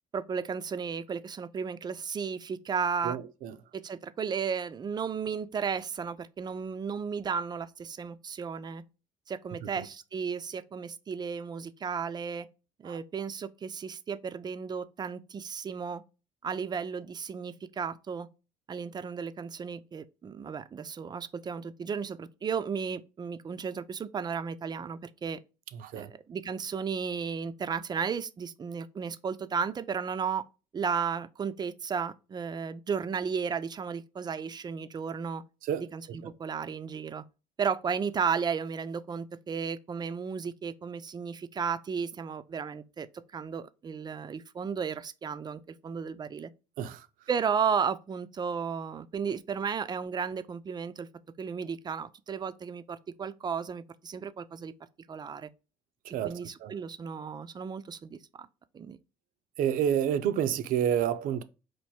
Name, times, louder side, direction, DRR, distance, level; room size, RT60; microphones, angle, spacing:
voice 1, 0.1-3.2 3.7-8.8 9.3-12.5 12.8-16.0 16.4-18.3 18.7-25.4 25.9-30.4 30.7-35.4 35.9-37.2 37.6-43.1 43.3-46.5 47.3-51.1 51.4-54.7 55.1-55.5 56.2-58.5 58.7-59.0, right 6 dB, 30° right, 0.4 m, -34 dB
voice 2, 3.0-3.6 9.8-9.9 12.9-13.0 25.8-26.1 35.6-35.9 46.8-47.1 56.1-56.7 59.6-61.4, right 9 dB, 75° right, 0.6 m, -29 dB
4.5 x 2.6 x 4.2 m
cardioid pair, 110°, 14 cm